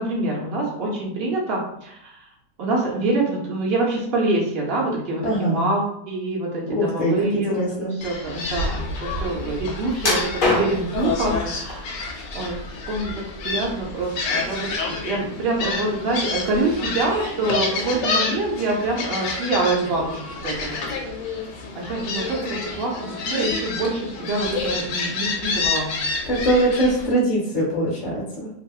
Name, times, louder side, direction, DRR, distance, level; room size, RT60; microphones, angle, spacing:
voice 1, 0.0-2.3 2.6-7.6 7.9-12.1 12.3-12.6 12.9-20.8 21.1-21.2 21.7-25.9, right 2 dB, 85° right, -3 dB, 0.5 m, -25 dB
voice 2, 5.2-5.6 6.7-7.9 26.3-28.5, right 1 dB, 35° left, -5 dB, 0.8 m, -22 dB
Gull seagull, 8.0-27.1, left 3 dB, 75° left, 1.1 m, -29 dB
sound 1, 10.0-11.0 11.7-12.4 12.8-13.7 14.0-14.2 14.8-14.9, left 2 dB, 55° left, 0.5 m, -24 dB
2.7 x 2.7 x 2.3 m, 0.76 s
omnidirectional pair, 1.8 m